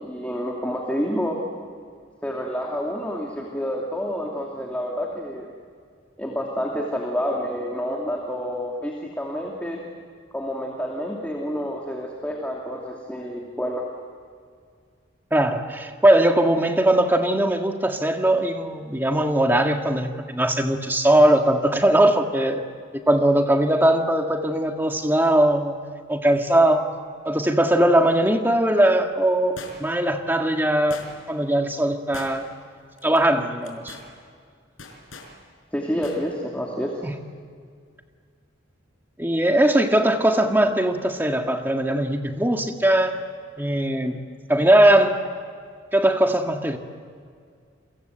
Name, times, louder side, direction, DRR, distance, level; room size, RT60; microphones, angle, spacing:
voice 1, 0.0-1.4 2.2-5.5 6.2-9.8 10.3-13.8 35.7-36.9, equal, 5° left, -1 dB, 2.6 m, -28 dB
voice 2, 15.3-22.6 23.1-25.8 26.1-26.9 27.3-31.0 31.3-32.4 33.0-34.0 37.0-37.1 39.2-43.1 43.6-44.2 44.5-45.2 45.9-46.8, right 1 dB, 10° right, 4 dB, 1.8 m, -20 dB
sound 1, 29.6-30.1 30.9-31.4 32.1-32.7 33.0-33.2 33.6-34.1 34.8-35.3 36.0-36.2 36.5-36.6, left 3 dB, 85° left, 5.0 m, -40 dB
30.0 x 23.5 x 8.0 m, 2.1 s
head